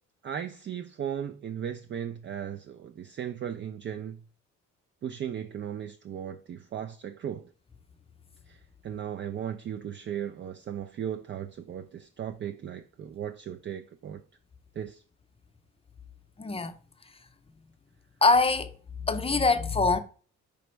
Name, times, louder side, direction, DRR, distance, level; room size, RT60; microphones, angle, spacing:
voice 1, 0.2-4.2 5.0-7.5 8.5-14.2 14.7-15.0, right 9 dB, 40° right, 0.4 m, -36 dB
voice 2, 16.4-16.7 18.2-20.0, left 3 dB, 20° left, 0.6 m, -24 dB
5.2 x 3.3 x 3.1 m
cardioid pair, 90°, 30 cm